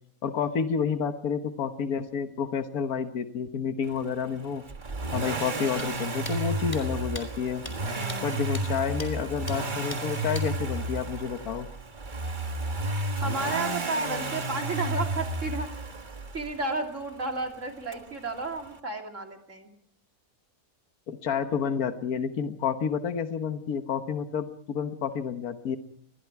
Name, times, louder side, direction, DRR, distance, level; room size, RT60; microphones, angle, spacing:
voice 1, 0.2-4.6 5.1-7.7 8.2-11.7 21.1-25.8, left 7 dB, 75° left, 8 dB, 1.7 m, -30 dB
Accelerating revving vroom, 4.7-16.6 17.9-18.0, right 2 dB, 35° right, 1.5 m, -32 dB
sound 1, 5.8-5.9 6.2-6.4 6.7-6.8 7.1-7.2 7.6-7.7 8.1-8.2 8.5-8.6 9.0-9.1 9.5-9.6 9.9-10.0 10.3-10.5, left 1 dB, 20° left, 3.7 m, -38 dB
voice 2, 7.8-8.2 13.2-15.7 16.3-19.7, right 2 dB, 55° right, 3 dB, 3.2 m, -32 dB
28.5 x 22.0 x 4.7 m, 0.62 s
omnidirectional pair, 1.6 m